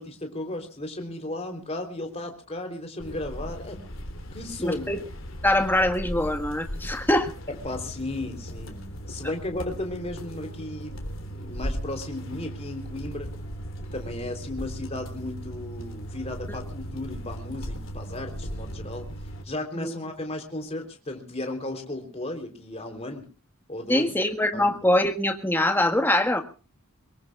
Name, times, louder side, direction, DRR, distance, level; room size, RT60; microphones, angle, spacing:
voice 1, 0.0-3.9 4.3-4.9 7.5-13.3 13.9-19.0 19.4-23.3 23.7-24.1 24.5-24.7, left 1 dB, 30° left, 4 dB, 3.5 m, -35 dB
sound 1, 3.0-19.4, equal, 60° left, 3.6 m, -37 dB
voice 2, 4.6-5.0 5.4-7.3 16.5-16.6 19.7-19.9 23.9-26.4, left 1 dB, 10° left, 6 dB, 1.6 m, -23 dB
24.5 x 22.0 x 2.4 m, 0.36 s
head